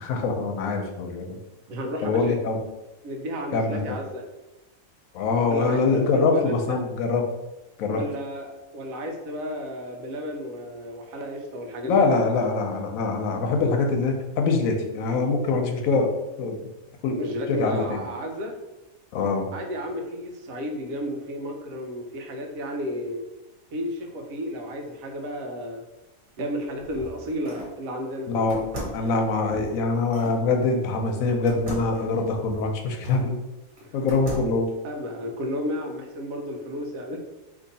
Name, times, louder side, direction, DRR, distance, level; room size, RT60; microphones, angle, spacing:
voice 1, 0.0-1.3 2.0-2.6 3.5-4.0 5.1-7.3 7.8-8.0 11.8-16.1 16.4-16.6 17.0-17.2 17.5-18.0 19.1-19.5 28.3-28.6 28.9-33.4 33.9-34.7, left 3 dB, 85° left, 4 dB, 1.0 m, -24 dB
voice 2, 1.7-2.3 3.0-4.2 5.5-6.8 7.9-12.1 17.1-18.6 19.5-23.2 23.7-25.8 26.4-28.3 33.8-33.9 34.8-37.2, equal, 85° right, 3 dB, 1.1 m, -33 dB
sound 1, 26.4-27.8 28.5-30.4 31.5-33.3 33.8-34.7, equal, 50° right, 1.3 m, -38 dB
2.8 x 2.7 x 3.9 m, 1.0 s
omnidirectional pair, 1.4 m